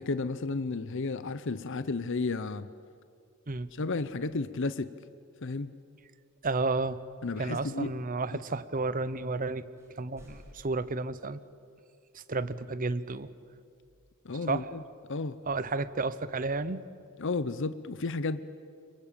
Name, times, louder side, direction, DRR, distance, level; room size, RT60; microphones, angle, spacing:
voice 1, 0.0-2.7 3.8-4.9 5.4-5.7 7.2-7.9 14.2-14.8 15.1-15.4 17.2-18.4, left 3 dB, 60° left, 14 dB, 0.7 m, -32 dB
voice 2, 6.4-7.0 7.4-9.6 10.0-11.4 12.1-13.3 14.5-14.7 15.5-16.9, right 3 dB, 40° right, 14 dB, 0.8 m, -32 dB
sound 1, 9.8-10.9, equal, 15° right, 5.6 m, -53 dB
25.5 x 23.0 x 8.9 m, 2.4 s
head